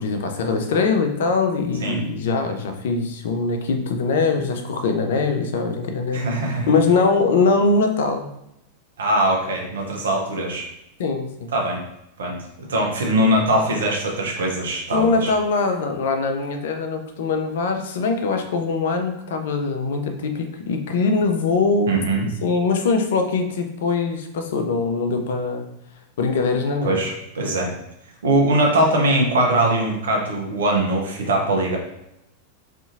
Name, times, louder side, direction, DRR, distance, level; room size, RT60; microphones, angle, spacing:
voice 1, 0.0-6.2 6.7-8.3 11.0-11.5 14.9-21.9 22.4-25.6 26.2-27.0, left 4 dB, 60° left, 5 dB, 0.4 m, -22 dB
voice 2, 6.1-6.7 9.0-10.7 11.5-11.8 12.2-15.3 21.9-22.3 26.8-27.7 28.2-31.8, right 1 dB, 65° right, 0 dB, 0.6 m, -21 dB
2.6 x 2.5 x 2.5 m, 0.83 s
figure-of-eight pair, 90°, 0 cm